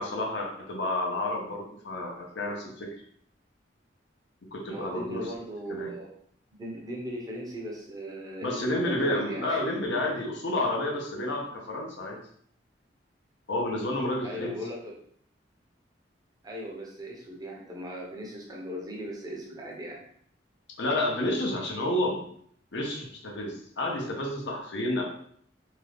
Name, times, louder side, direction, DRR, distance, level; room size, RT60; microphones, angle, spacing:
voice 1, 0.0-2.9 4.5-5.3 5.7-5.9 8.4-12.2 13.5-14.5 20.8-22.2 22.7-25.0, left 1 dB, 70° left, -1 dB, 0.7 m, -30 dB
voice 2, 4.7-6.1 6.5-9.7 14.2-14.9 16.4-20.0, equal, 20° right, -2 dB, 0.7 m, -38 dB
2.8 x 2.3 x 3.3 m, 0.64 s
head